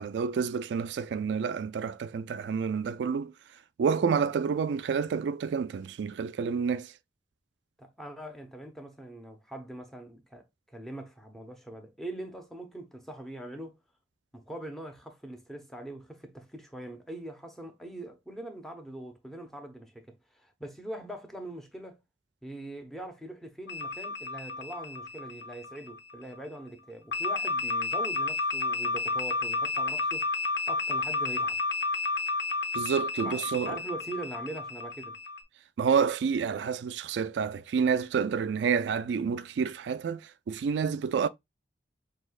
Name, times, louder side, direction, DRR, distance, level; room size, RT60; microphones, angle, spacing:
voice 1, 0.0-3.3 3.8-6.9 32.7-33.8 35.8-41.3, right 6 dB, 75° right, 0.3 m, -29 dB
voice 2, 7.8-13.8 14.3-22.0 22.4-30.3 30.7-31.6 33.2-35.2, right 1 dB, ahead, 0.9 m, -42 dB
sound 1, 23.7-26.2 27.1-35.4, left 3 dB, 70° left, 0.8 m, -31 dB
6.2 x 2.9 x 2.3 m
head